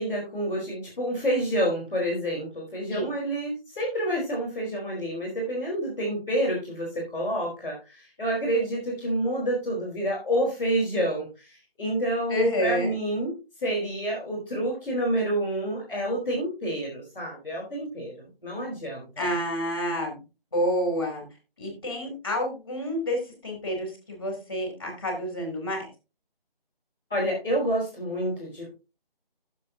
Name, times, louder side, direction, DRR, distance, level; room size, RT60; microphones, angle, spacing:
voice 1, 0.0-13.3 13.6-19.2 27.1-28.7, right 1 dB, ahead, -18 dB, 1.3 m, -28 dB
voice 2, 12.3-12.9 19.2-20.2 20.5-21.2 21.6-25.9, equal, 25° left, 2 dB, 3.2 m, -28 dB
14.5 x 7.4 x 2.8 m, 0.29 s
figure-of-eight pair, 180°, 29 cm